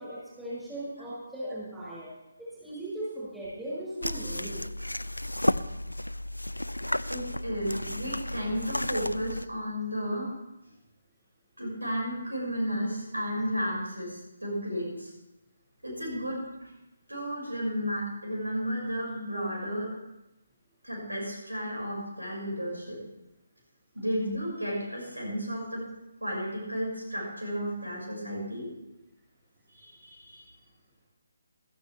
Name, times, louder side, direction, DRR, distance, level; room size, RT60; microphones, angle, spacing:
voice 1, 0.0-2.1 2.6-4.7, right 1 dB, 5° right, -10 dB, 6.0 m, -38 dB
sound 1, 4.0-9.5, left 1 dB, 85° left, 0.4 m, -32 dB
voice 2, 7.1-10.3 11.6-15.1 15.8-16.7 17.1-19.9 20.8-23.0 23.9-25.8 26.2-28.7 29.7-30.4, equal, 75° right, -3 dB, 5.7 m, -33 dB
16.0 x 13.5 x 3.3 m, 0.94 s
figure-of-eight pair, 145°, 0 cm